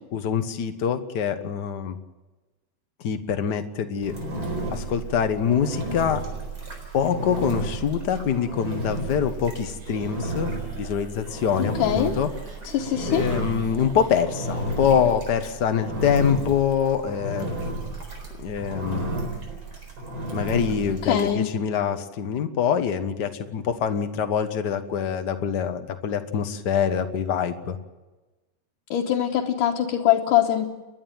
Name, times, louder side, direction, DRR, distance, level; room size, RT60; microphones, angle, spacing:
voice 1, 0.1-2.0 3.0-4.2 4.7-6.2 6.9-12.3 13.1-17.5 18.4-19.2 20.3-27.8, left 7 dB, 55° left, 8 dB, 1.2 m, -25 dB
Engine, 4.0-21.3, right 2 dB, 40° right, 5.0 m, -32 dB
sound 1, 9.8-10.2 10.5-14.9, right 2 dB, 85° right, 6.1 m, -46 dB
voice 2, 11.6-12.1 12.7-13.3 21.0-21.5 28.9-30.7, left 11 dB, 90° left, -1 dB, 2.7 m, -23 dB
30.0 x 11.0 x 9.1 m, 1.2 s
omnidirectional pair, 3.6 m